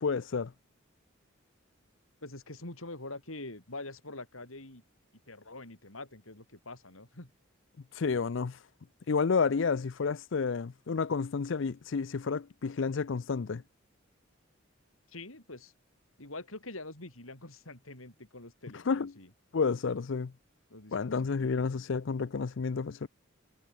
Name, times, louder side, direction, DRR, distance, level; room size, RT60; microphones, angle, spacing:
voice 1, 0.0-0.5 7.9-8.6 9.1-13.6 18.9-19.1 19.5-20.3 20.9-23.1, left 5 dB, 65° left, 0.5 m, -30 dB
voice 2, 2.2-4.8 5.3-7.3 15.1-15.7 16.2-19.3 20.7-21.6, left 2 dB, 80° left, 5.6 m, -45 dB
head